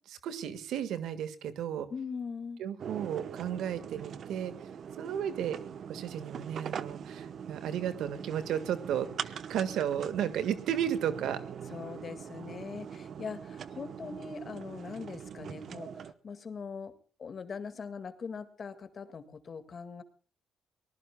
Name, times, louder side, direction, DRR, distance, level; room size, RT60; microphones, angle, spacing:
voice 1, 0.1-1.9 2.6-4.5 5.0-5.6 5.9-11.4, right 9 dB, 80° right, 12 dB, 1.6 m, -33 dB
voice 2, 1.9-2.6 11.7-16.9 17.2-20.0, left 5 dB, 45° left, 10 dB, 2.0 m, -41 dB
sound 1, 2.8-16.1, right 7 dB, 60° right, 0.9 m, -42 dB
24.0 x 19.5 x 2.3 m, 0.39 s
cardioid pair, 90°, 0 cm